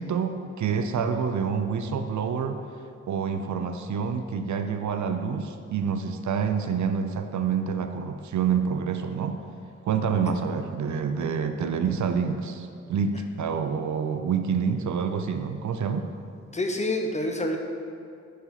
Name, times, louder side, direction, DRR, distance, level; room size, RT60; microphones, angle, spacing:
voice 1, 0.0-2.6 3.1-9.4 9.8-16.1, right 6 dB, 70° right, 7 dB, 0.6 m, -27 dB
voice 2, 16.5-17.6, left 1 dB, 25° left, 3 dB, 0.8 m, -27 dB
6.9 x 4.8 x 5.9 m, 2.5 s
cardioid pair, 75°, 30 cm